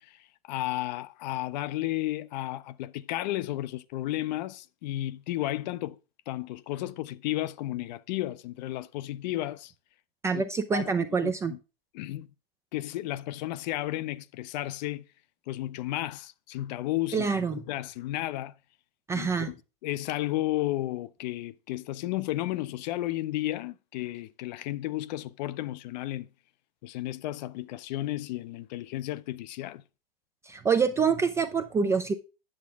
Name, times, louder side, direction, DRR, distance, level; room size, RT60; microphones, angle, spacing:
voice 1, 0.0-6.0 6.3-9.7 10.3-10.4 10.7-10.9 11.2-11.6 11.9-12.3 12.7-15.1 15.5-18.5 19.1-26.3 26.8-29.8, left 15 dB, 45° left, 0.5 m, -33 dB
voice 2, 10.2-11.5 17.1-17.6 19.1-19.5 30.5-32.1, right 5 dB, 10° right, 0.3 m, -26 dB
8.7 x 7.2 x 3.5 m
hypercardioid pair, 120°, 30 cm